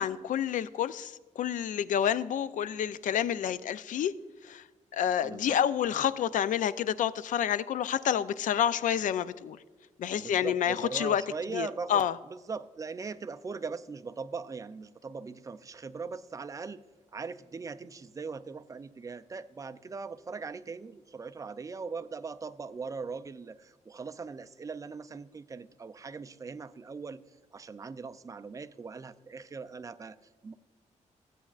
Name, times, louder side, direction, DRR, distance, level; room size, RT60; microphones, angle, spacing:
voice 1, 0.0-4.1 4.4-4.6 4.9-9.6 10.0-11.2 11.5-12.2, left 9 dB, 80° left, 0.4 m, -29 dB
voice 2, 5.2-5.6 10.2-16.8 17.1-27.2 27.5-30.2 30.4-30.5, right 4 dB, 25° right, 0.4 m, -40 dB
15.5 x 8.3 x 2.4 m
cardioid pair, 115°, 13 cm